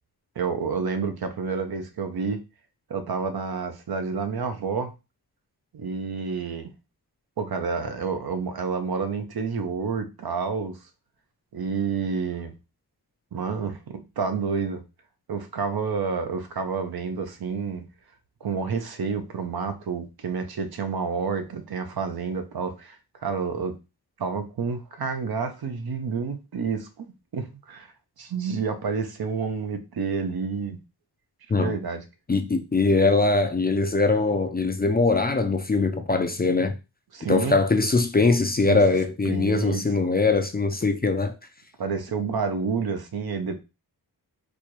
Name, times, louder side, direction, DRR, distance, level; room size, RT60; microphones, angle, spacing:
voice 1, 0.4-2.4 2.9-4.9 5.7-6.7 7.4-10.8 11.5-12.5 13.3-14.8 15.3-17.8 18.4-23.8 24.2-27.0 27.3-27.9 28.2-30.8 31.6-32.0 37.1-37.6 38.7-38.8 39.3-39.8 41.8-43.6, right 5 dB, 70° right, 0.7 m, -29 dB
voice 2, 32.3-36.8 37.3-41.3, left 3 dB, 25° left, 0.4 m, -22 dB
4.3 x 2.2 x 3.0 m
wide cardioid pair, 80°, 39 cm